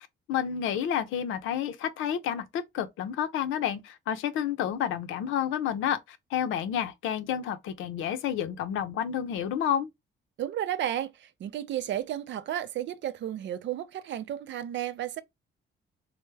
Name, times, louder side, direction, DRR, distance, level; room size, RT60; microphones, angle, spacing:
voice 1, 0.0-9.9, left 9 dB, 85° left, 0.6 m, -30 dB
voice 2, 10.4-15.2, right 11 dB, 65° right, 0.5 m, -33 dB
3.3 x 2.1 x 3.2 m
cardioid pair, 90°, 20 cm